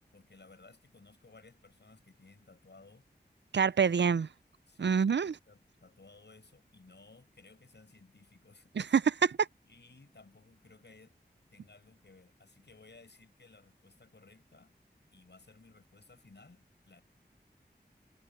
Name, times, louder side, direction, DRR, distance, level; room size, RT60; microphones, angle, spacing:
voice 1, 0.1-3.1 4.7-8.7 9.6-11.1 11.5-14.7 15.1-17.0, left 3 dB, 80° left, 7.9 m, -58 dB
voice 2, 3.5-4.3 4.8-5.3 8.8-9.5, right 6 dB, 85° right, 0.5 m, -26 dB
wide cardioid pair, 45°, 18 cm